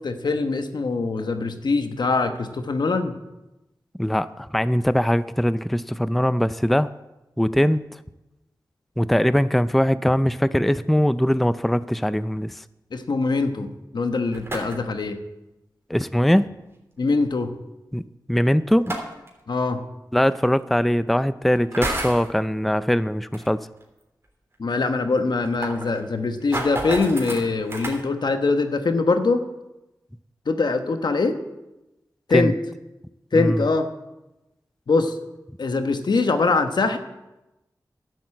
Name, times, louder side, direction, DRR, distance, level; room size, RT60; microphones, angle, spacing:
voice 1, 0.0-3.2 12.9-15.2 17.0-17.5 19.5-19.8 24.6-29.4 30.5-31.4 32.3-32.5 33.3-33.9 34.9-35.1 35.6-37.0, left 3 dB, 75° left, 7 dB, 1.1 m, -23 dB
voice 2, 4.0-6.9 7.4-7.8 9.0-12.6 15.9-16.5 17.9-19.0 20.1-23.7 32.3-32.5 33.3-33.6, equal, ahead, 14 dB, 0.4 m, -21 dB
sound 1, 14.3-15.0 16.6-16.7 18.7-19.3 20.4-20.5 21.6-22.3 23.3-23.5 23.8-23.9 24.2-24.3 24.5-24.6 25.2-28.0, right 1 dB, 35° right, 3.4 m, -30 dB
11.5 x 7.9 x 7.6 m, 0.98 s
wide cardioid pair, 55°, 7 cm